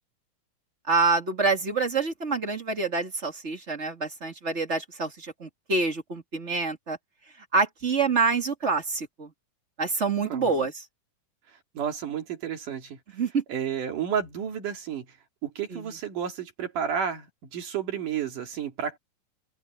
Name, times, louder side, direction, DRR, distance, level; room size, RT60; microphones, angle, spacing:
voice 1, 0.9-7.0 7.5-9.3 9.8-10.7 13.1-13.4 15.7-15.9, right 4 dB, 25° right, 1.6 m, -26 dB
voice 2, 10.2-10.7 11.8-13.0 13.5-15.1 15.4-19.0, right 8 dB, 65° right, 3.7 m, -31 dB
omnidirectional pair, 4.0 m